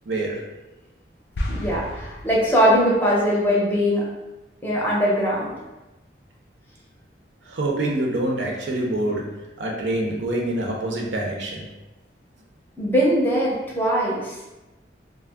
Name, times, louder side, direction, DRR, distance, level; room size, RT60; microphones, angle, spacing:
voice 1, 0.1-0.4 7.5-9.2 9.6-11.7, right 1 dB, 85° right, -1 dB, 0.6 m, -25 dB
sound 1, 1.3-3.0, left 1 dB, 65° left, 0.4 m, -32 dB
voice 2, 1.5-4.0 4.6-5.5 12.8-14.3, equal, 10° left, -5 dB, 0.5 m, -21 dB
2.3 x 2.0 x 3.3 m, 1.1 s
head